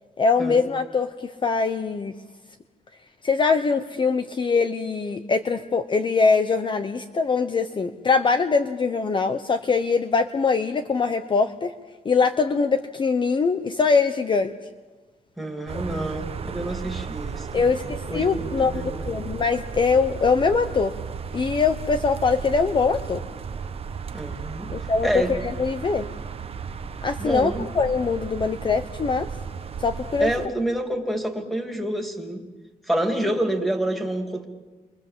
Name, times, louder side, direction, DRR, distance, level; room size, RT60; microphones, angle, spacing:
voice 1, 0.2-2.1 3.2-11.7 12.0-14.5 15.7-15.8 17.5-20.9 21.3-23.2 24.7-26.1 27.0-29.3 29.8-30.3, left 4 dB, 30° left, 9 dB, 0.9 m, -22 dB
voice 2, 15.4-19.2 24.1-24.7 25.0-25.3 27.2-27.6 30.2-32.4 32.8-34.4, right 1 dB, ahead, 4 dB, 2.9 m, -28 dB
sound 1, 15.7-30.5, right 6 dB, 40° right, 1.2 m, -34 dB
29.5 x 24.0 x 7.6 m, 1.3 s
wide cardioid pair, 160°, 15 cm